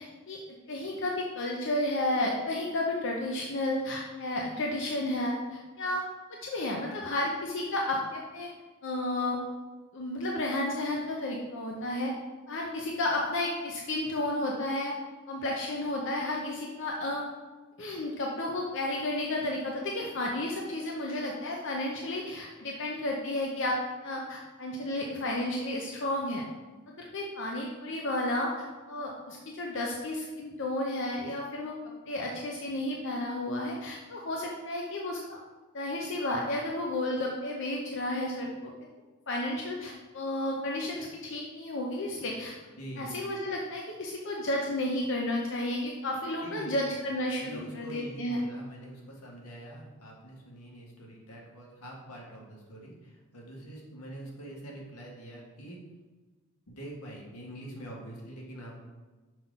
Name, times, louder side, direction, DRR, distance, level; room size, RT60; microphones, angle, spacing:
voice 1, 0.0-6.0 6.4-8.5 8.8-9.4 9.9-12.1 12.5-14.9 15.3-17.2 17.8-23.8 24.0-26.4 26.9-35.4 35.7-38.7 39.3-42.5 43.0-48.4, left 1 dB, 55° left, -1 dB, 0.7 m, -32 dB
voice 2, 42.8-43.1 46.4-47.0 47.3-55.8 56.7-58.8, right 1 dB, 90° left, -2 dB, 1.6 m, -45 dB
6.1 x 3.8 x 5.2 m, 1.2 s
head